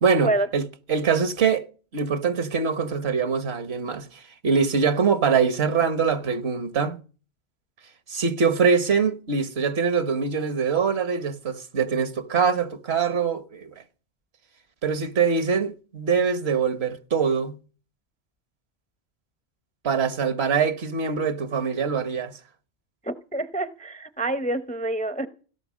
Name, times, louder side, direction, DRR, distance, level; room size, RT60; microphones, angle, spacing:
voice 1, 0.0-1.7 1.9-7.0 8.1-13.7 14.8-17.6 19.8-22.4, right 6 dB, 75° right, 1.4 m, -23 dB
voice 2, 23.0-25.3, right 2 dB, 10° left, 0.4 m, -27 dB
17.0 x 9.8 x 6.2 m
omnidirectional pair, 1.1 m